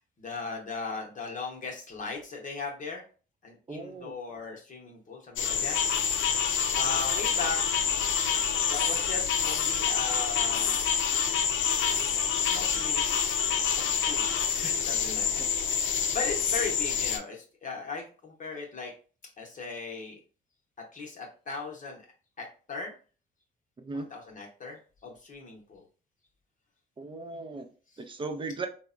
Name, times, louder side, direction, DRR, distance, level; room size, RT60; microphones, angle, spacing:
voice 1, 0.2-3.0 3.4-5.8 6.7-7.9 8.6-10.8 12.3-13.3 13.8-18.9 19.4-20.2 20.9-22.0 22.4-22.9 23.9-25.8 27.9-28.0, left 4 dB, 40° left, 0 dB, 0.8 m, -38 dB
voice 2, 3.7-4.1 15.4-15.5 23.8-24.1 27.0-27.7 28.0-28.7, right 3 dB, 25° right, 6 dB, 0.5 m, -37 dB
sound 1, 5.4-17.2, left 7 dB, 80° left, 0.5 m, -27 dB
3.3 x 2.1 x 2.4 m, 0.38 s
cardioid pair, 90°, 20 cm